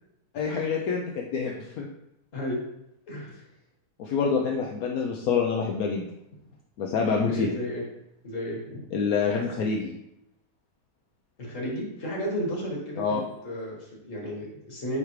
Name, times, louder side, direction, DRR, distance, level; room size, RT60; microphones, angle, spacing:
voice 1, 0.3-1.9 4.0-6.1 6.8-7.5 8.9-9.9 13.0-13.2, left 5 dB, 70° left, 0 dB, 1.1 m, -26 dB
voice 2, 2.3-2.6 3.1-3.4 7.3-7.8 8.2-8.9 11.4-15.0, equal, 55° left, -2 dB, 1.8 m, -33 dB
9.3 x 3.4 x 3.1 m, 0.83 s
omnidirectional pair, 1.7 m